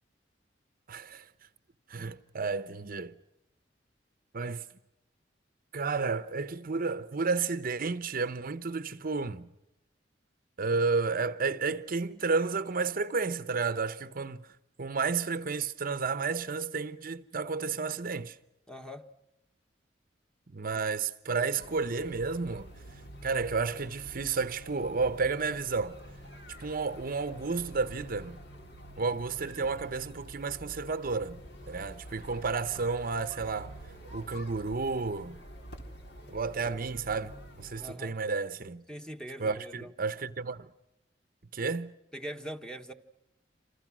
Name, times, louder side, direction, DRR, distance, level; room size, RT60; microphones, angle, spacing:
voice 1, 0.9-1.3 1.9-3.1 4.3-4.6 5.7-9.5 10.6-14.4 14.8-18.4 20.5-22.7 23.2-26.0 26.6-28.4 29.0-33.7 34.1-35.4 36.3-38.8 39.4-40.7 41.5-41.9, right 4 dB, 50° right, 0.8 m, -32 dB
voice 2, 18.7-19.1 37.8-38.2 38.9-39.9 42.1-42.9, equal, 5° left, 1.4 m, -42 dB
sound 1, 21.6-37.8, equal, 65° left, 3.8 m, -48 dB
28.0 x 27.0 x 6.2 m
head